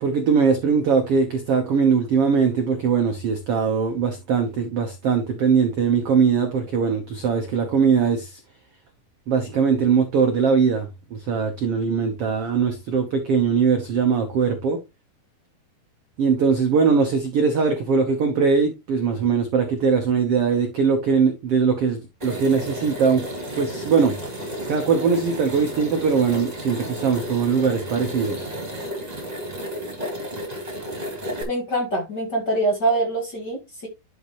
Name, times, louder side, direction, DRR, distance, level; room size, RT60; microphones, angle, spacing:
voice 1, 0.0-8.4 9.3-14.8 16.2-23.3 23.6-24.2 24.7-28.5, right 5 dB, 70° right, 1.4 m, -21 dB
sound 1, 22.2-31.4, equal, 10° right, 2.9 m, -32 dB
voice 2, 31.5-33.9, right 2 dB, 35° left, 2.1 m, -24 dB
11.0 x 6.0 x 3.1 m
omnidirectional pair, 4.3 m